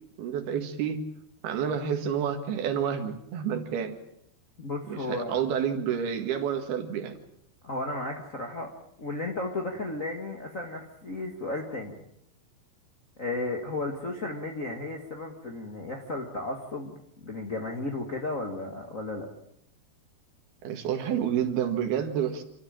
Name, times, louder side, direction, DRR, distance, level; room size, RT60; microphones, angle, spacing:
voice 1, 0.2-1.0 1.4-4.0 4.9-7.2 20.6-22.4, right 8 dB, 70° right, 6 dB, 3.6 m, -29 dB
voice 2, 4.6-5.4 7.6-8.7 9.0-11.9 13.2-19.3, left 2 dB, 65° left, 1 dB, 0.7 m, -34 dB
27.5 x 13.5 x 8.9 m, 0.76 s
omnidirectional pair, 4.8 m